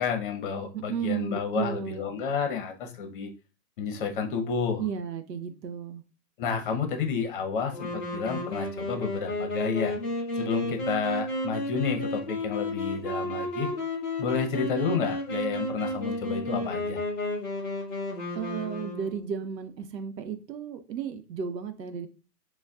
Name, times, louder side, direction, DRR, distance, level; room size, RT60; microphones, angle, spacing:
voice 1, 0.0-3.3 3.8-4.8 6.4-9.9 10.4-13.7 14.2-17.0, left 5 dB, 35° left, 5 dB, 0.8 m, -30 dB
voice 2, 0.7-2.1 4.8-6.0 18.3-22.1, right 7 dB, 80° right, 8 dB, 0.9 m, -33 dB
Wind instrument woodwind instrument, 7.7-19.4, left 1 dB, ahead, 0.4 m, -32 dB
6.3 x 2.2 x 2.3 m, 0.33 s
hypercardioid pair, 155°, 49 cm